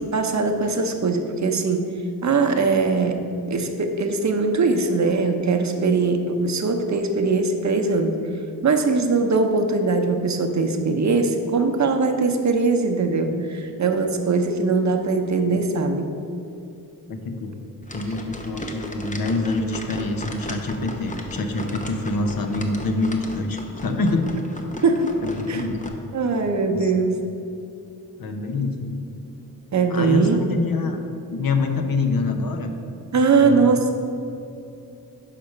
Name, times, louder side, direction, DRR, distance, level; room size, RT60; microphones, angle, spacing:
voice 1, 0.0-1.8 2.2-3.2 3.5-8.2 8.6-16.1 24.8-25.1 25.5-25.6 26.1-27.2 29.7-30.5 33.1-33.8, right 4 dB, 50° right, 5 dB, 0.7 m, -21 dB
voice 2, 17.1-17.6 17.9-24.3 25.2-25.9 26.7-26.9 28.2-29.1 29.9-31.0 31.3-32.7 33.4-33.7, left 3 dB, 75° left, 5 dB, 0.8 m, -26 dB
sound 1, 17.8-25.9, left 1 dB, 20° left, 0.7 m, -36 dB
5.9 x 4.8 x 6.4 m, 2.6 s
wide cardioid pair, 120°, 35 cm